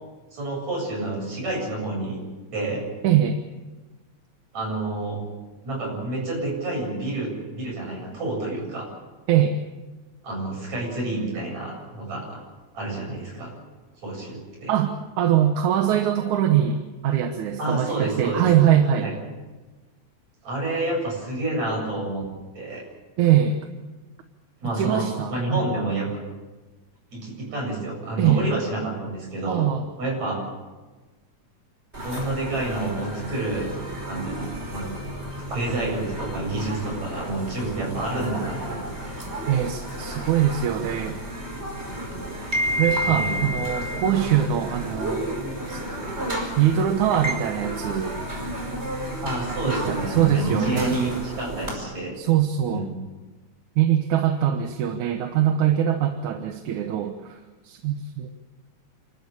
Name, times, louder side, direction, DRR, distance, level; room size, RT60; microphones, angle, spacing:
voice 1, 0.3-2.2 2.5-2.9 4.5-5.2 5.6-8.9 10.2-12.4 12.7-13.5 14.0-14.7 17.6-18.5 19.0-19.1 20.4-22.3 22.5-22.8 24.6-26.2 27.1-29.7 30.0-30.4 32.0-33.7 34.1-34.9 35.5-39.1 43.0-43.4 49.2-52.2 52.6-52.9, right 2 dB, 65° right, -1 dB, 9.1 m, -29 dB
voice 2, 3.0-3.4 9.3-9.6 14.7-19.1 23.2-23.6 24.7-25.6 28.2-28.5 29.5-29.8 39.5-41.2 42.8-45.3 45.7-45.8 46.6-48.2 49.7-51.0 52.2-52.9 53.8-57.4 57.6-58.3, right 10 dB, 90° right, 6 dB, 2.6 m, -22 dB
sound 1, 31.9-51.8, equal, 20° right, 5.4 m, -32 dB
28.5 x 13.5 x 8.7 m, 1.2 s
omnidirectional pair, 3.3 m